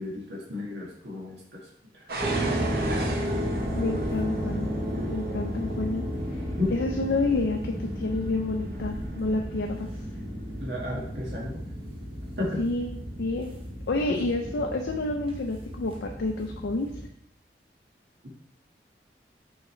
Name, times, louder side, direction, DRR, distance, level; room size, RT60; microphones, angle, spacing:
voice 1, 0.0-1.7 1.9-2.1 2.8-3.2 4.9-5.2 6.6-6.7 10.6-11.6 12.4-12.6 14.1-14.5 18.2-18.3, left 2 dB, 80° right, -3 dB, 1.7 m, -34 dB
sound 1, 2.1-10.9 11.6-12.1 12.6-12.8, right 2 dB, 60° right, 0.8 m, -40 dB
sound 2, 2.2-17.1, equal, 30° right, 0.9 m, -33 dB
voice 2, 3.7-4.7 5.1-6.0 6.7-9.9 12.6-12.9 13.2-13.5 13.9-16.9, left 2 dB, 80° left, 2 dB, 0.5 m, -29 dB
6.3 x 4.8 x 3.2 m, 0.75 s
head